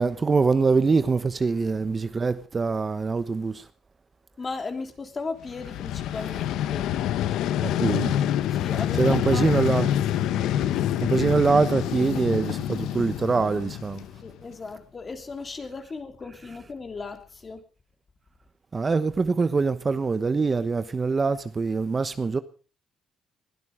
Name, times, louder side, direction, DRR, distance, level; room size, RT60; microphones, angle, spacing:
voice 1, 0.0-3.6 7.6-8.2 9.0-9.9 11.0-14.0 18.7-22.4, right 4 dB, 35° right, 1.1 m, -24 dB
voice 2, 4.4-6.9 8.5-9.4 14.2-17.6, left 4 dB, 35° left, 3.1 m, -36 dB
Vehicle, 5.5-14.4, left 11 dB, 85° left, 0.9 m, -27 dB
21.5 x 12.5 x 4.9 m
cardioid pair, 90°, 0 cm